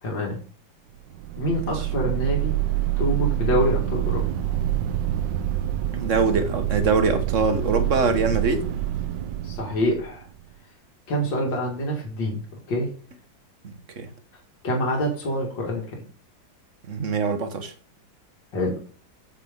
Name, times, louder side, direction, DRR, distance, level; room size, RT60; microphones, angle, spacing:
voice 1, 0.0-0.4 1.4-2.6 3.0-4.2 9.4-10.2 11.1-12.4 12.7-12.9 14.6-16.0 18.5-18.8, equal, 75° left, 3.0 m, -26 dB
sound 1, 1.1-10.4, right 13 dB, 80° right, 1.5 m, -26 dB
voice 2, 5.9-8.7 13.6-14.1 16.9-17.7, right 4 dB, 45° right, 1.6 m, -23 dB
8.7 x 8.3 x 3.7 m
omnidirectional pair, 2.0 m